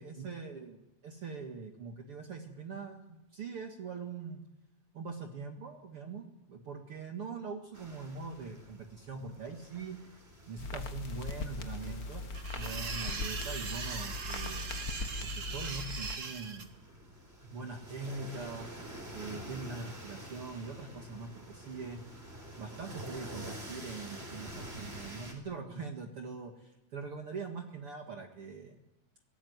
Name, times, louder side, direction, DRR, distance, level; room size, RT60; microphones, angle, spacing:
voice 1, 0.0-4.4 4.9-10.0 10.5-12.3 12.5-14.7 15.2-16.7 17.4-18.7 19.1-22.0 22.6-28.8, right 4 dB, 45° right, 4 dB, 2.3 m, -42 dB
sound 1, 7.7-25.3, right 1 dB, 15° right, 4.4 m, -48 dB
sound 2, 10.6-16.1, left 3 dB, 60° left, 0.9 m, -40 dB
sound 3, 12.3-16.6, right 5 dB, 70° right, 0.7 m, -40 dB
23.0 x 18.0 x 9.5 m, 0.91 s
omnidirectional pair, 4.0 m